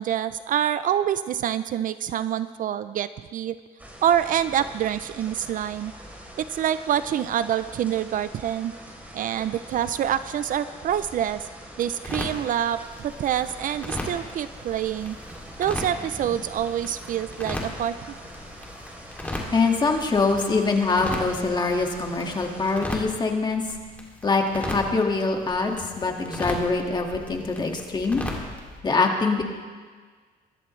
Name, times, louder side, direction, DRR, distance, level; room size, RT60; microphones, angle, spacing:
voice 1, 0.0-3.6 4.0-5.9 6.4-8.7 9.1-11.5 11.8-15.2 15.6-18.0, right 10 dB, 55° right, 13 dB, 0.5 m, -26 dB
sound 1, 3.8-22.7, equal, 10° right, 3.5 m, -43 dB
sound 2, 12.0-28.8, left 1 dB, 10° left, 2.6 m, -37 dB
voice 2, 19.5-23.6 24.2-28.2 28.8-29.4, left 3 dB, 25° left, 2 dB, 2.0 m, -24 dB
22.0 x 13.5 x 3.2 m, 1.5 s
cardioid pair, 110°, 17 cm